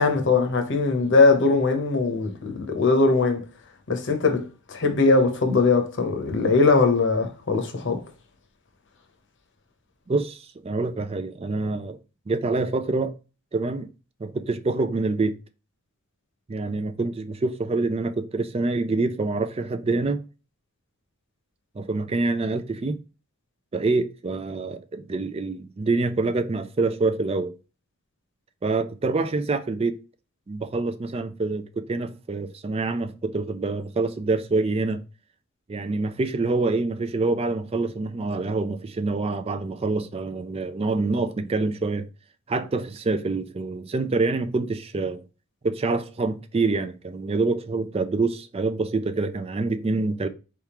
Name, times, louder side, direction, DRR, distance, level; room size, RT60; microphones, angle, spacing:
voice 1, 0.0-3.4 3.9-8.0, left 3 dB, 55° left, 1.0 m, -21 dB
voice 2, 10.1-12.0 12.3-13.2 13.5-13.9 14.2-15.3 16.5-20.2 21.8-23.0 23.7-27.5 28.6-30.0 30.5-35.0 35.7-42.1 42.5-45.2 45.6-50.3, right 3 dB, 25° right, 0.4 m, -26 dB
4.5 x 3.6 x 2.9 m
head